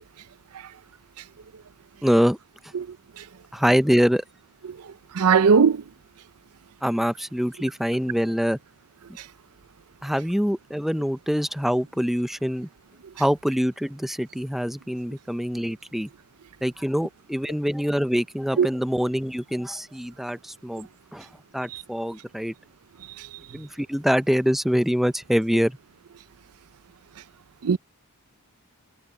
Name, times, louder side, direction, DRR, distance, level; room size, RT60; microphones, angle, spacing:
voice 1, 2.0-2.4 3.5-4.2 6.8-8.6 10.0-12.7 13.2-16.1 16.6-21.3 21.5-22.5 23.5-25.8, equal, ahead, 0.6 m, -24 dB
voice 2, 5.2-5.8 18.6-18.7 21.7-21.8 27.6-27.8, right 6 dB, 80° right, 0.5 m, -18 dB
head